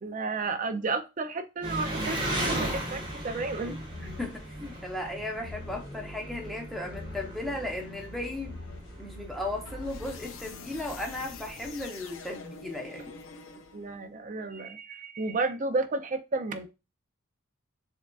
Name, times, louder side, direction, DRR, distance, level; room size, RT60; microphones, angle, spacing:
voice 1, 0.0-2.2 2.5-3.8 13.7-16.7, right 3 dB, 40° right, 0.4 m, -32 dB
Engine, 1.6-11.8, right 1 dB, 25° right, 0.9 m, -37 dB
sound 1, 3.9-4.5 5.4-6.0 6.9-7.5 8.4-9.0 9.6-14.0, left 3 dB, 70° left, 0.5 m, -44 dB
voice 2, 4.0-4.3 4.6-8.6 9.0-13.1, left 2 dB, ahead, 0.7 m, -36 dB
6.2 x 2.4 x 2.3 m
head